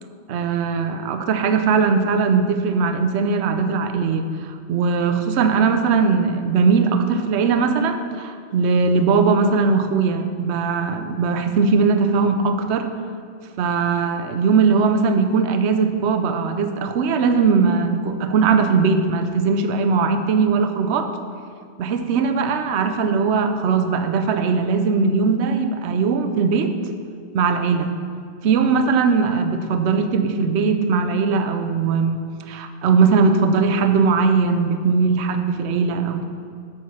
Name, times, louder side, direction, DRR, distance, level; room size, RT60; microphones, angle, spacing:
voice 1, 0.3-12.9 13.6-21.1 21.8-26.7 27.3-27.9 28.4-36.2, right 5 dB, 65° right, 7 dB, 0.9 m, -19 dB
7.2 x 6.3 x 7.3 m, 2.2 s
omnidirectional pair, 1.3 m